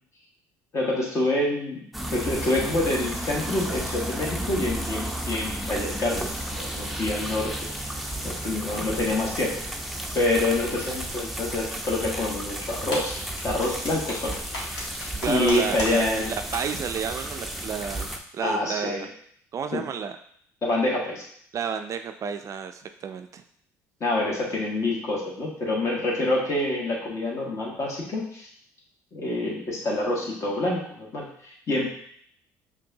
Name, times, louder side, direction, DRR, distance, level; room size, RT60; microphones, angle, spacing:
voice 1, 0.7-1.8 2.1-7.7 8.2-9.5 10.1-13.2 13.4-14.6 15.3-16.3 18.4-19.1 19.7-19.8 20.6-21.2 24.0-28.5 29.1-31.9, left 2 dB, 45° left, -3 dB, 1.6 m, -27 dB
sound 1, 1.9-18.2, right 1 dB, ahead, 0.6 m, -33 dB
sound 2, 12.7-15.9 16.2-16.3 16.5-16.6, left 2 dB, 70° left, 1.4 m, -33 dB
voice 2, 15.2-19.1 19.5-20.2 21.5-23.4, right 7 dB, 45° right, 7 dB, 0.4 m, -31 dB
5.2 x 2.6 x 2.7 m, 0.64 s
supercardioid pair, 75°, 7 cm